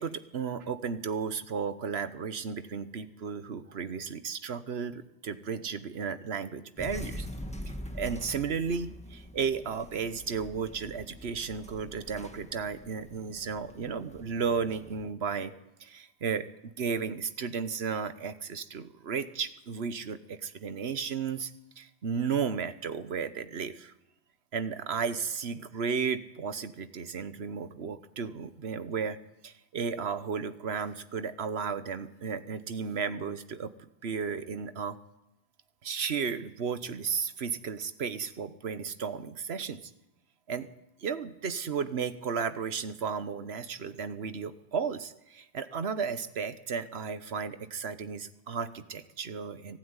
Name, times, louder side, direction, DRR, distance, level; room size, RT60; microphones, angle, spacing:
voice 1, 0.0-7.3 7.9-15.5 15.8-21.5 21.8-23.9 24.5-29.2 29.4-33.7 34.0-35.0 35.8-39.9 40.5-40.7 41.0-49.8, right 6 dB, 80° right, 12 dB, 1.3 m, -34 dB
sound 1, 6.8-15.0, equal, 5° left, 1.9 m, -44 dB
24.0 x 13.5 x 9.7 m, 0.88 s
omnidirectional pair, 1.1 m